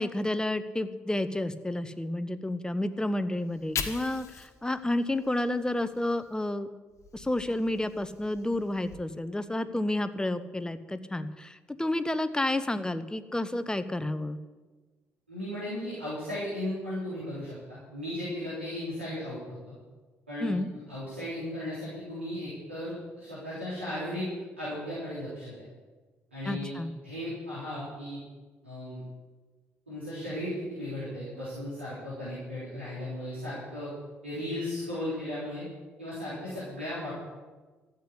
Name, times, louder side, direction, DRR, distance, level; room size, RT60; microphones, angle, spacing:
voice 1, 0.0-6.7 7.1-14.4 20.4-20.7 26.5-26.9, left 1 dB, 10° left, 12 dB, 1.1 m, -30 dB
Fire, 3.4-6.5 6.9-8.9, left 7 dB, 50° left, 1.6 m, -42 dB
voice 2, 15.3-19.4 19.6-19.7 20.3-20.6 20.9-24.3 24.6-25.5 26.3-28.2 28.6-29.1 29.9-33.9 34.2-35.6 36.0-37.1, left 1 dB, 90° right, -11 dB, 3.7 m, -36 dB
13.5 x 8.3 x 8.3 m, 1.3 s
figure-of-eight pair, 45°, 6 cm